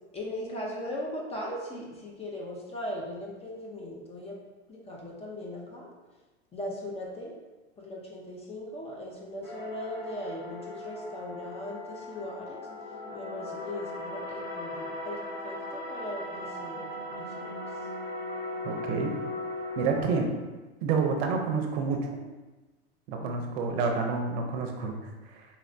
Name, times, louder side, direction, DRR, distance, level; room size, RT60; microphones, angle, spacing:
voice 1, 0.1-4.4 4.7-5.9 6.5-7.3 7.8-12.7 13.1-17.5 23.2-23.5, left 1 dB, 20° left, -2 dB, 0.5 m, -39 dB
sound 1, 9.4-20.0, left 1 dB, 75° left, 0.8 m, -38 dB
voice 2, 18.6-19.1 19.8-20.3 20.8-22.1 23.1-25.4, right 4 dB, 60° right, 2 dB, 0.6 m, -29 dB
4.0 x 2.0 x 2.6 m, 1.2 s
hypercardioid pair, 105°, 34 cm